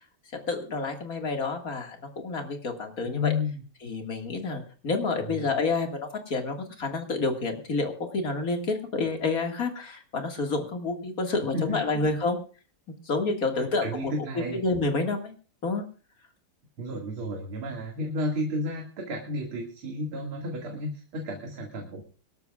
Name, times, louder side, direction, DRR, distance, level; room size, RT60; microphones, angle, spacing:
voice 1, 0.5-3.3 3.8-12.4 13.1-15.3 15.6-15.8, left 3 dB, 40° left, 4 dB, 2.3 m, -29 dB
voice 2, 3.0-3.6 5.2-5.5 11.5-12.0 13.6-14.6 16.8-22.0, left 1 dB, 75° right, 1 dB, 3.0 m, -32 dB
25.0 x 13.0 x 2.4 m, 0.36 s
omnidirectional pair, 2.4 m